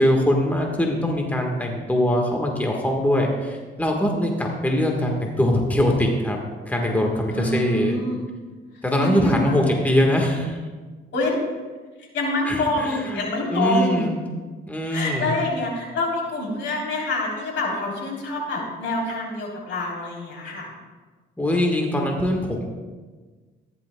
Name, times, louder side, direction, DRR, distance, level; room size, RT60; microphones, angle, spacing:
voice 1, 0.0-6.4 6.7-8.0 8.8-10.6 12.4-14.2 14.7-15.4 21.4-22.7, left 1 dB, 10° left, 1 dB, 1.4 m, -22 dB
voice 2, 7.3-8.2 9.0-9.6 11.1-11.4 12.1-14.1 14.9-20.7, left 2 dB, 70° left, -2 dB, 3.4 m, -26 dB
14.5 x 10.5 x 2.2 m, 1.4 s
cardioid pair, 90°, 20 cm